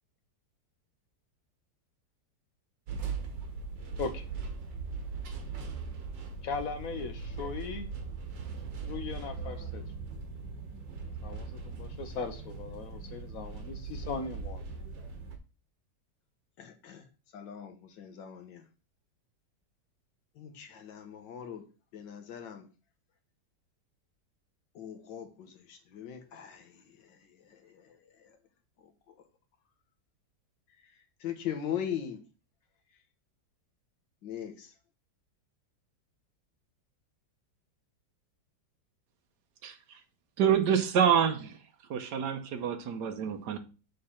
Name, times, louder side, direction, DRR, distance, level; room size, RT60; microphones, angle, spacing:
sound 1, 2.9-15.4, right 4 dB, 85° right, 1.9 m, -39 dB
voice 1, 6.4-7.9 8.8-9.8 11.2-14.7, left 4 dB, 60° left, 1.1 m, -38 dB
voice 2, 16.6-17.1 17.3-18.7 20.4-21.7 21.9-22.7 24.8-28.4 28.8-29.1 30.8-30.9 31.2-32.2 34.2-34.7, left 9 dB, 90° left, 1.8 m, -40 dB
voice 3, 40.4-41.6 41.9-43.6, right 8 dB, 70° right, 1.5 m, -27 dB
7.5 x 3.3 x 5.6 m
omnidirectional pair, 1.9 m